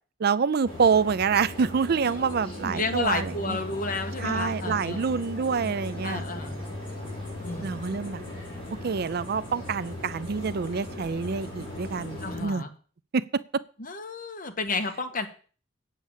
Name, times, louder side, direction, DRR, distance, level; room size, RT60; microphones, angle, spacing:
voice 1, 0.2-3.6 4.2-6.2 7.6-8.2 8.7-12.6 13.1-13.6, right 5 dB, 55° right, 0.5 m, -27 dB
sound 1, 0.6-12.4, left 1 dB, 30° left, 5.7 m, -38 dB
voice 2, 2.1-5.1 6.0-6.6 7.4-7.7 12.2-12.7 13.8-15.3, left 3 dB, 45° left, 1.6 m, -32 dB
8.5 x 8.1 x 7.3 m
head